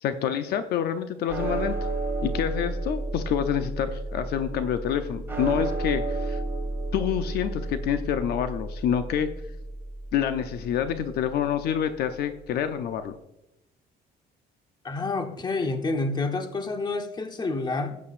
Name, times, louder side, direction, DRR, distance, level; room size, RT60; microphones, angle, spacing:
voice 1, 0.0-1.8 2.2-6.4 6.9-9.3 10.1-13.1, left 9 dB, 70° left, 9 dB, 0.6 m, -27 dB
sound 1, 1.3-11.7, right 2 dB, 15° right, 2.1 m, -32 dB
voice 2, 14.8-18.0, left 3 dB, 25° left, 6 dB, 1.0 m, -28 dB
12.5 x 8.4 x 2.5 m, 0.89 s
cardioid pair, 110°, 17 cm